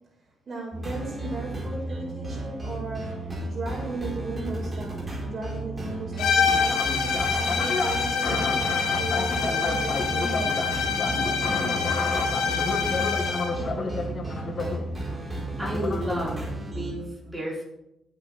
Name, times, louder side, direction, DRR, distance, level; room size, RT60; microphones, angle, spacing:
voice 1, 0.5-3.2 3.5-6.9 7.3-12.1, right 2 dB, 50° right, -2 dB, 5.5 m, -36 dB
sound 1, 0.7-16.9, right 1 dB, 25° right, 4.8 m, -34 dB
sound 2, 6.2-13.6, left 6 dB, 85° left, 2.1 m, -26 dB
sound 3, 6.4-16.5, left 3 dB, 50° left, 1.8 m, -32 dB
voice 2, 15.6-17.6, equal, 10° right, -5 dB, 5.3 m, -32 dB
17.5 x 8.6 x 3.6 m, 0.84 s
cardioid pair, 85°, 0 cm